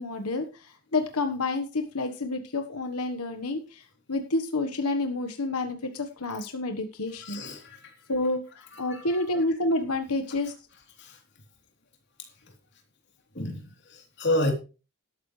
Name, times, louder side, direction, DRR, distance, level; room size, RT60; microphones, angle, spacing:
voice 1, 0.0-7.4 8.1-10.5, left 2 dB, 90° left, 6 dB, 1.4 m, -29 dB
voice 2, 7.2-7.9 8.7-9.2 11.0-11.2 13.3-14.5, left 1 dB, 50° left, 2 dB, 3.4 m, -30 dB
13.0 x 12.0 x 3.3 m, 0.33 s
head